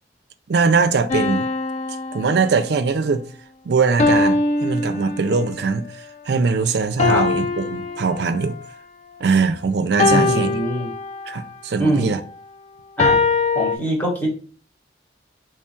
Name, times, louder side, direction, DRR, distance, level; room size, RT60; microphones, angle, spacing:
voice 1, 0.5-1.5 2.1-3.2 3.6-8.6 9.2-10.6 11.3-12.2, right 4 dB, 65° right, 0.4 m, -21 dB
sound 1, 1.1-2.9 4.0-5.6 7.0-8.7 10.0-11.5 13.0-13.8, left 3 dB, 35° left, 0.3 m, -22 dB
voice 2, 10.1-10.9 11.8-12.2 13.0-13.2 13.5-14.3, right 1 dB, 10° left, 1.1 m, -23 dB
3.1 x 2.3 x 4.3 m
head